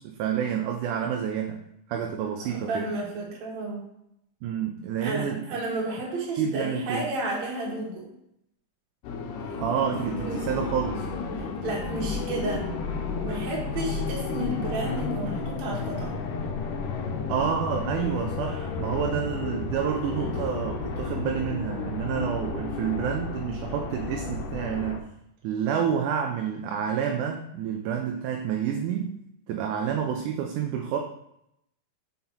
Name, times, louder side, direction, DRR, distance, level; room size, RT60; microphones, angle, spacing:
voice 1, 0.0-1.6 1.9-2.9 4.4-5.6 6.4-7.1 9.6-11.1 17.3-25.0 25.4-29.2 29.5-31.0, right 8 dB, 80° right, 3 dB, 2.0 m, -29 dB
voice 2, 2.4-3.8 5.0-8.1 9.4-9.6 10.1-10.5 11.6-12.7 13.2-16.2, right 2 dB, 60° right, -3 dB, 2.7 m, -32 dB
sound 1, 9.0-25.0, left 4 dB, 80° left, 2.3 m, -32 dB
7.6 x 5.6 x 2.9 m, 0.79 s
omnidirectional pair, 3.8 m